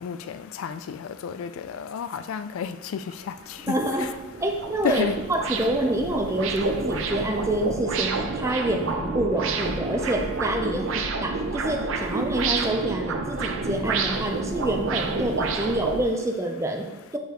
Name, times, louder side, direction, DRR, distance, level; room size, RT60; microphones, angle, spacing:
voice 1, 0.0-2.8 3.3-3.4 4.8-5.2, left 7 dB, 75° left, 0.3 m, -31 dB
sound 1, 3.1-3.2 3.6-16.0, right 3 dB, 65° right, 0.6 m, -29 dB
voice 2, 3.7-4.1 4.4-17.2, right 1 dB, 15° right, 0.6 m, -27 dB
7.0 x 5.1 x 3.0 m
head